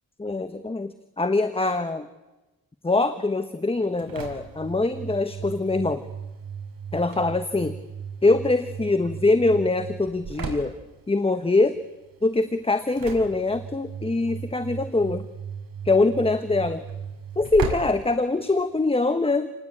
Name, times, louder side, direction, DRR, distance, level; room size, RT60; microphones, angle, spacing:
voice 1, 0.2-2.1 2.8-6.0 6.9-7.8 8.2-10.7 11.1-11.8 12.2-15.3 15.8-16.8 17.4-19.5, left 3 dB, 15° left, 9 dB, 1.2 m, -23 dB
Engine / Slam, 3.7-18.9, right 6 dB, 65° right, 5.4 m, -37 dB
29.0 x 20.0 x 8.8 m, 1.0 s
wide cardioid pair, 145°, 37 cm